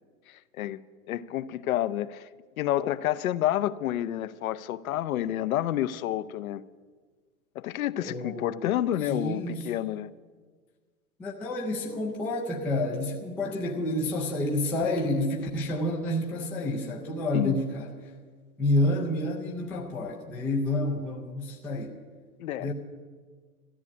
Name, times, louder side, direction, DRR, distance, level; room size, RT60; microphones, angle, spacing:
voice 1, 0.3-0.8 1.1-2.3 2.6-6.6 7.5-10.1 17.3-17.6 22.4-22.7, left 12 dB, 65° left, 0.8 m, -29 dB
voice 2, 8.0-8.7 9.0-9.6 11.2-17.9 18.6-22.0 22.6-22.7, left 1 dB, 5° left, 0.3 m, -29 dB
13.5 x 11.0 x 8.4 m
hypercardioid pair, 135°, 44 cm